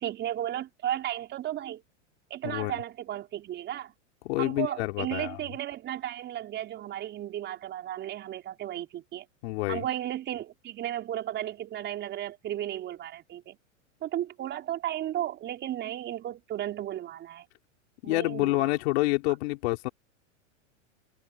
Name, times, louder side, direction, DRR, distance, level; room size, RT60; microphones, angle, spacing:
voice 1, 0.0-1.8 2.3-3.9 4.4-9.2 9.7-13.6 14.0-17.5 18.0-18.7, right 12 dB, 30° right, 4.8 m, -34 dB
voice 2, 2.4-2.8 4.2-5.4 9.4-9.8 18.0-19.9, left 22 dB, 60° left, 3.7 m, -28 dB
supercardioid pair, 140°, 37 cm